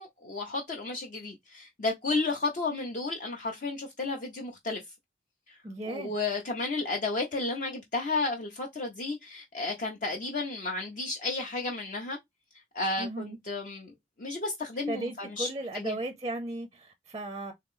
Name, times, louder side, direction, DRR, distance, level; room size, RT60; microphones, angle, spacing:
voice 1, 0.0-4.8 5.5-5.6 5.9-12.2 12.7-13.9 14.2-15.5 15.7-16.0, left 3 dB, 45° left, 0.6 m, -32 dB
voice 2, 5.6-6.1 13.0-13.4 14.9-17.5, right 2 dB, 20° right, 0.5 m, -36 dB
3.3 x 2.9 x 3.6 m
head